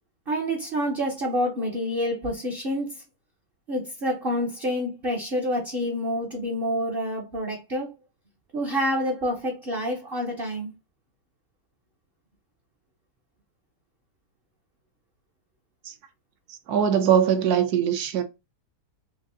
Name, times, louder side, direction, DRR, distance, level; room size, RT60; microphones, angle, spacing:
voice 1, 0.3-3.0 3.7-7.9 8.5-10.7, equal, 50° right, 0.7 m, -28 dB
voice 2, 16.7-18.2, right 8 dB, 70° right, 1.0 m, -21 dB
6.0 x 2.0 x 2.6 m
omnidirectional pair, 1.9 m